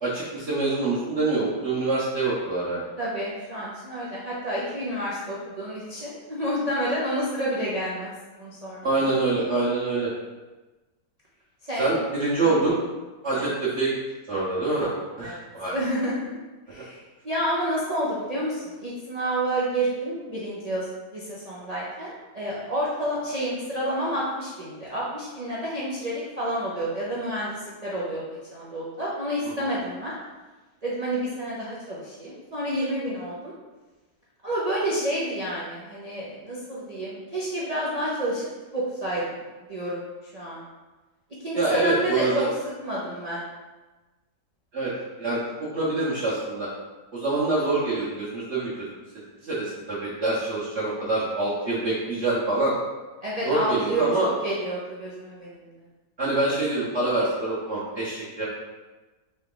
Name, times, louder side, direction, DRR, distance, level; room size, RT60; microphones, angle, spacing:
voice 1, 0.0-2.9 8.8-10.1 11.8-12.8 13.2-13.9 14.3-14.9 15.2-15.7 41.5-42.5 44.7-44.9 45.2-46.7 47.1-48.9 49.4-52.7 53.4-54.3 56.2-58.4, right 2 dB, 50° right, -10 dB, 1.1 m, -25 dB
voice 2, 3.0-8.1 8.4-9.1 11.6-11.9 12.4-12.5 13.4-13.5 15.2-15.4 15.7-16.3 16.7-20.9 21.1-28.2 28.5-30.1 30.8-33.5 34.4-38.5 38.7-39.4 39.7-40.6 41.4-42.4 42.8-43.4 53.2-55.7, right 1 dB, 85° right, -7 dB, 0.3 m, -29 dB
4.0 x 3.4 x 3.7 m, 1.2 s
omnidirectional pair, 1.8 m